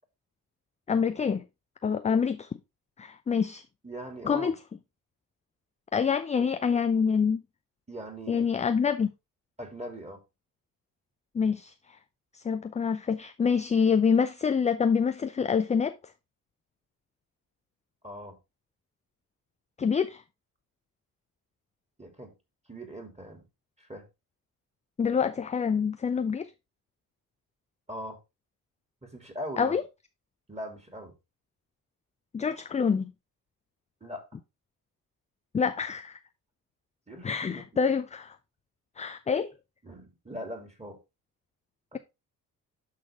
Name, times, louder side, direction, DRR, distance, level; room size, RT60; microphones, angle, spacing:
voice 1, 0.9-1.4 1.8-2.5 3.0-3.6 4.2-4.5 5.9-7.4 8.3-9.1 11.3-11.7 12.3-16.0 19.8-20.2 25.0-26.5 29.6-29.8 32.3-33.1 35.5-36.2 37.2-38.4 39.0-39.5, left 6 dB, 15° left, 0.5 m, -26 dB
voice 2, 3.8-4.6 6.4-6.5 7.9-8.5 9.6-10.2 18.0-18.4 22.0-22.3 22.7-23.4 23.8-24.1 27.9-28.2 29.0-29.8 30.5-31.1 34.0-34.2 37.1-37.9 39.8-41.0 41.9-42.0, equal, 15° right, 3.0 m, -41 dB
12.0 x 4.1 x 3.6 m
figure-of-eight pair, 45°, 47 cm